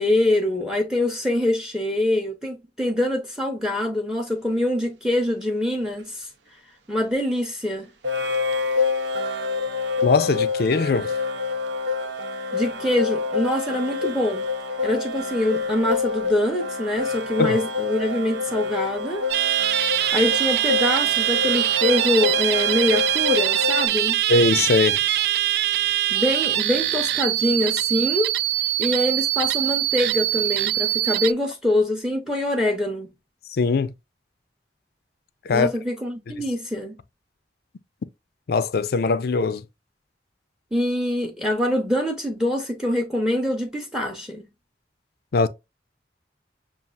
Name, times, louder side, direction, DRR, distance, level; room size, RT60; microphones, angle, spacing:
voice 1, 0.0-6.3 6.9-7.9 12.5-14.5 14.8-19.2 19.9-24.2 25.8-28.3 28.6-33.1 35.5-37.0 40.7-44.5, left 1 dB, 5° right, 0.7 m, -24 dB
sound 1, 5.4-5.5 8.0-23.9, left 4 dB, 90° right, 0.7 m, -27 dB
voice 2, 10.0-11.1 17.4-17.6 24.3-25.0 33.5-33.9 35.5-35.7 38.5-39.6 45.3-45.5, left 4 dB, 60° left, 0.4 m, -20 dB
sound 2, 19.3-31.3, right 13 dB, 60° right, 0.3 m, -23 dB
7.0 x 2.4 x 2.4 m
head